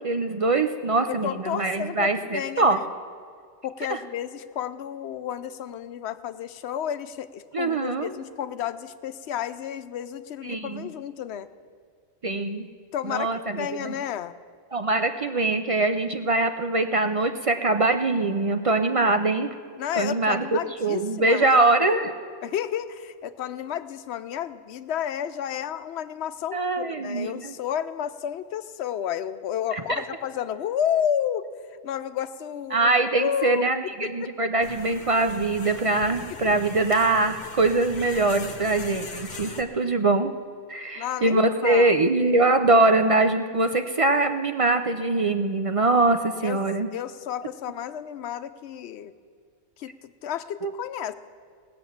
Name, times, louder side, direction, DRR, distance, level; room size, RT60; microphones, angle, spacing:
voice 1, 0.0-2.8 3.9-4.0 7.5-8.1 10.4-10.9 12.2-12.7 13.0-13.9 14.7-19.5 20.0-22.1 26.5-27.5 29.9-30.0 32.7-40.3 40.7-46.9 50.6-50.7, right 2 dB, 40° right, 7 dB, 0.5 m, -23 dB
voice 2, 1.1-2.8 3.6-11.5 12.9-14.3 19.8-21.6 22.4-31.5 31.8-32.9 33.2-34.3 36.3-36.6 41.0-42.0 46.4-46.6 46.9-49.1 49.8-49.9 50.2-51.1, left 9 dB, 75° left, 13 dB, 0.9 m, -31 dB
sound 1, 34.6-39.6, left 4 dB, 55° left, 1.1 m, -40 dB
18.0 x 7.7 x 7.1 m, 2.2 s
omnidirectional pair, 1.1 m